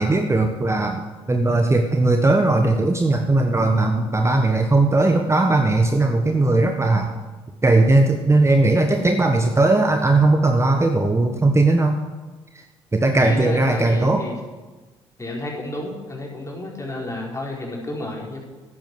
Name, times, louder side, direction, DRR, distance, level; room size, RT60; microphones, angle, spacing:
voice 1, 0.0-7.1 7.6-12.0 12.5-12.6 12.9-14.2, right 2 dB, 20° right, 5 dB, 1.3 m, -18 dB
voice 2, 13.2-14.3 15.2-18.4, left 1 dB, 20° left, -1 dB, 4.8 m, -31 dB
12.5 x 9.4 x 7.9 m, 1.3 s
hypercardioid pair, 50°, 14 cm